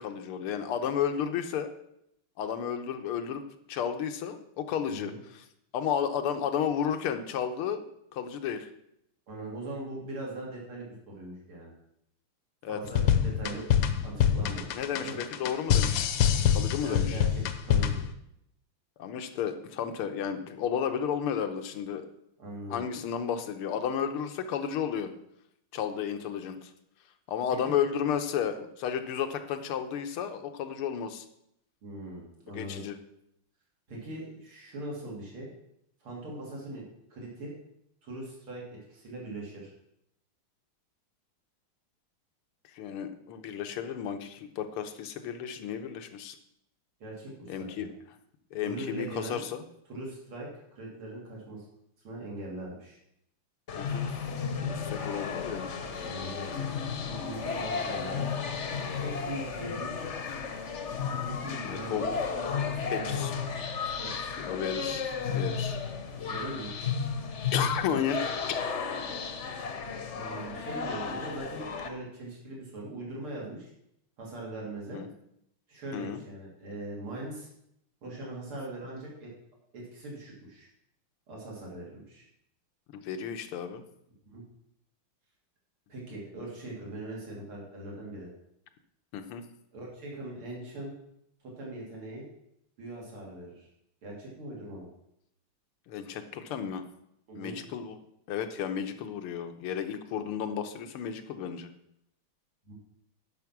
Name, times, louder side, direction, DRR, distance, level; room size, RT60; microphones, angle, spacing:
voice 1, 0.0-1.7 2.4-3.4 3.7-5.4 5.7-7.8 8.1-8.7 12.6-12.8 14.7-16.1 16.5-17.2 19.0-22.1 22.7-25.1 25.7-26.7 27.3-31.3 32.6-33.0 42.7-46.4 47.5-47.9 48.5-49.6 53.8-54.1 54.6-55.7 61.6-62.1 62.9-63.3 64.4-65.1 65.3-65.8 67.5-68.2 68.5-68.6 74.9-75.1 75.9-76.2 82.9-83.8 89.1-89.4 95.9-96.8 97.4-98.0 98.3-101.7, left 8 dB, 90° left, 8 dB, 1.8 m, -32 dB
voice 2, 4.9-5.2 9.3-11.7 12.7-13.7 14.0-15.2 16.7-18.0 22.4-22.8 27.6-27.7 31.8-32.8 33.9-35.5 36.0-36.9 37.1-37.5 38.0-39.7 47.0-47.9 48.6-49.4 49.9-51.6 52.0-53.0 56.0-56.5 57.0-58.3 59.0-59.9 61.2-63.2 64.0-64.4 66.3-66.8 70.1-73.7 74.2-75.0 75.7-77.5 78.0-79.3 79.7-80.7 81.3-82.2 84.3-84.4 85.9-88.3 89.7-90.9 91.4-92.3 92.8-93.7 94.0-94.9 97.3-97.6 102.7-102.8, right 1 dB, 80° right, -3 dB, 3.8 m, -41 dB
sound 1, 12.9-18.1, left 9 dB, 70° left, 1.3 m, -25 dB
sound 2, 53.7-71.9, left 6 dB, 45° left, 0.9 m, -33 dB
11.0 x 5.9 x 6.0 m, 0.76 s
omnidirectional pair, 2.4 m